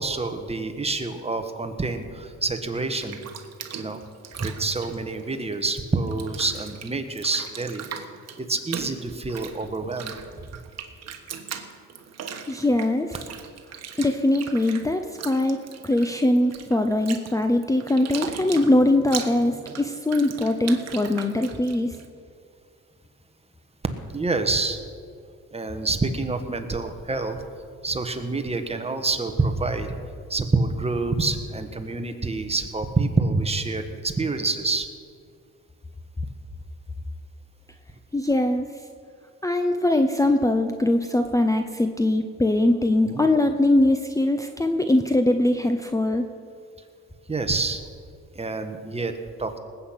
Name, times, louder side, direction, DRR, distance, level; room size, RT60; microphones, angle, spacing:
voice 1, 0.0-3.2 3.8-4.0 4.4-7.8 8.4-10.1 24.1-24.8 25.5-27.4 27.8-30.0 30.3-34.9 43.0-43.2 47.3-47.8 48.3-49.6, right 3 dB, 20° right, 7 dB, 1.4 m, -27 dB
Bathtub (filling or washing), 2.8-5.8 6.1-22.1, right 7 dB, 60° right, 1.4 m, -39 dB
voice 2, 12.5-13.2 13.7-22.0 38.1-38.7 39.4-46.2, left 1 dB, 10° left, 7 dB, 0.7 m, -22 dB
19.5 x 8.7 x 5.8 m, 2.2 s
cardioid pair, 90°, 30 cm